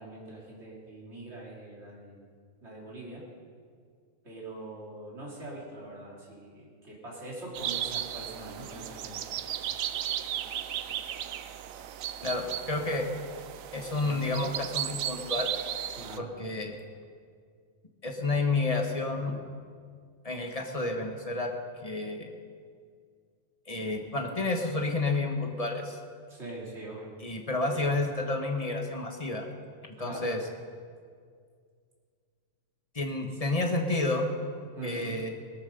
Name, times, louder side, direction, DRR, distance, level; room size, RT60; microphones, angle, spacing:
voice 1, 0.0-2.3 2.6-3.2 4.2-9.2 15.9-16.3 26.3-27.1 30.0-30.3 34.7-35.2, right 2 dB, 55° right, -4 dB, 3.4 m, -43 dB
sound 1, 7.5-16.2, right 10 dB, 85° right, 1.1 m, -35 dB
voice 2, 12.2-13.1 13.7-15.5 16.2-16.7 18.0-19.4 20.2-21.5 21.8-22.3 23.7-26.0 27.2-29.5 30.0-30.4 32.9-34.3 34.8-35.3, left 2 dB, 25° left, 3 dB, 1.6 m, -30 dB
18.0 x 14.0 x 5.3 m, 2.1 s
omnidirectional pair, 1.4 m